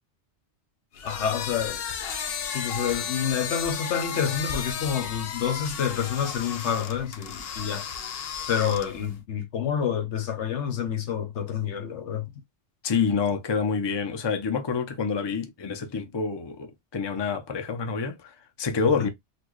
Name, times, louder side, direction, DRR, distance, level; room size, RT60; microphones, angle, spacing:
sound 1, 0.9-9.1, left 7 dB, 65° left, 0.8 m, -34 dB
voice 1, 1.0-1.8 2.5-7.9 8.5-12.3 19.0-19.1, left 8 dB, 80° left, 1.1 m, -28 dB
voice 2, 12.8-19.1, left 5 dB, 30° left, 0.5 m, -27 dB
4.2 x 2.2 x 3.0 m
omnidirectional pair, 1.2 m